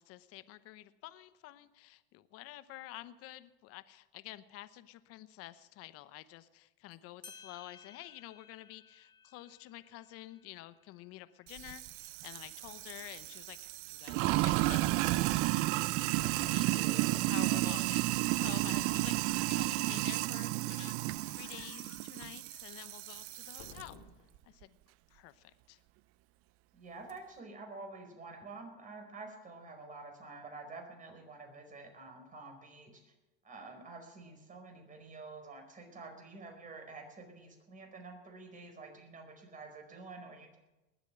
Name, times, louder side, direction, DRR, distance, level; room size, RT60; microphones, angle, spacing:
voice 1, 0.0-15.4 16.1-18.0 18.3-20.9 21.4-24.0 24.4-24.8 25.1-25.8, left 16 dB, 50° left, 13 dB, 0.9 m, -50 dB
sound 1, 6.9-7.0 7.2-12.3, left 5 dB, 15° left, 1.9 m, -58 dB
Sink (filling or washing), 11.5-23.8, right 19 dB, 50° right, 0.5 m, -32 dB
voice 2, 16.6-17.9 26.7-33.1 33.4-40.6, right 3 dB, 25° right, 4 dB, 4.7 m, -49 dB
sound 2, 17.8-24.4, left 9 dB, 70° left, 2.2 m, -59 dB
20.0 x 8.2 x 7.9 m, 1.0 s
hypercardioid pair, 100°, 30 cm